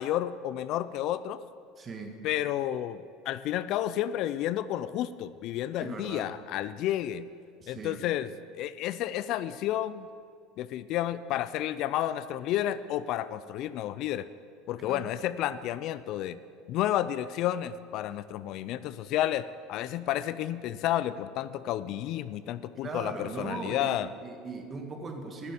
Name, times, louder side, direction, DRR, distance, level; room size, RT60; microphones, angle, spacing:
voice 1, 0.0-1.4 2.2-7.3 7.7-8.3 8.6-10.1 10.6-14.3 14.7-16.4 16.7-24.1, left 12 dB, 60° left, 15 dB, 0.4 m, -31 dB
voice 2, 1.8-2.2 5.8-6.2 7.6-8.0 14.8-15.0 22.8-23.9 24.2-25.5, right 4 dB, 30° right, 4 dB, 1.7 m, -39 dB
11.0 x 7.4 x 8.2 m, 2.3 s
supercardioid pair, 95°, 0 cm